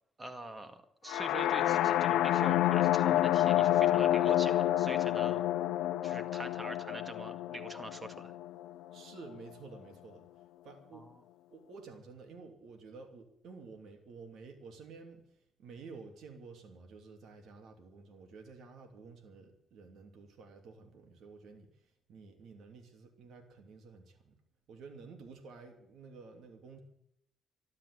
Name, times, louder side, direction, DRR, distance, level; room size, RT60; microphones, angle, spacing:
voice 1, 0.2-5.4 6.0-8.3 10.9-11.1, right 1 dB, 20° right, 9 dB, 2.0 m, -44 dB
sound 1, 1.1-8.9, left 13 dB, 85° left, 0.8 m, -29 dB
voice 2, 8.9-10.2 10.6-11.1 11.5-15.2 15.6-21.7 22.1-24.3 24.7-26.8, right 4 dB, 75° right, 4 dB, 2.8 m, -51 dB
13.5 x 12.0 x 8.1 m, 0.72 s
cardioid pair, 90°, 0 cm